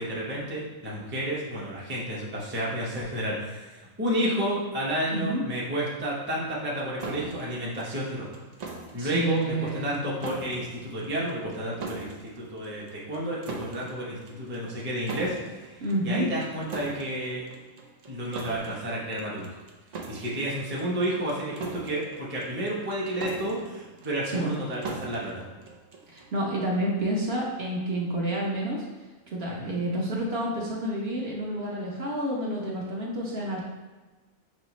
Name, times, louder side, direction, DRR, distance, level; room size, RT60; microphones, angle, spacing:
voice 1, 0.0-8.3 8.9-17.4 18.1-19.6 20.1-25.4 29.5-29.7, right 1 dB, 10° right, -5 dB, 0.5 m, -31 dB
voice 2, 5.1-5.4 9.0-9.9 15.8-16.3 24.3-24.5 26.1-28.8 29.3-33.6, right 1 dB, 55° right, -3 dB, 0.9 m, -29 dB
sound 1, 7.0-26.4, right 4 dB, 85° right, 0.3 m, -42 dB
5.5 x 3.1 x 3.0 m, 1.2 s
omnidirectional pair, 1.5 m